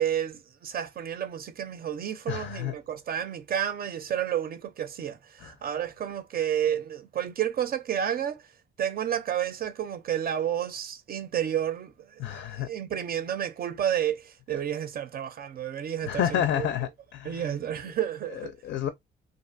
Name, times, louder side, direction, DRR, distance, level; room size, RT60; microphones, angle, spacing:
voice 1, 0.0-8.4 8.8-16.7 17.2-18.5, right 10 dB, 50° right, 0.5 m, -31 dB
voice 2, 2.3-2.7 12.2-12.7 16.1-17.4 18.6-18.9, left 10 dB, 65° left, 0.4 m, -29 dB
2.5 x 2.2 x 2.5 m
cardioid pair, 90°, 20 cm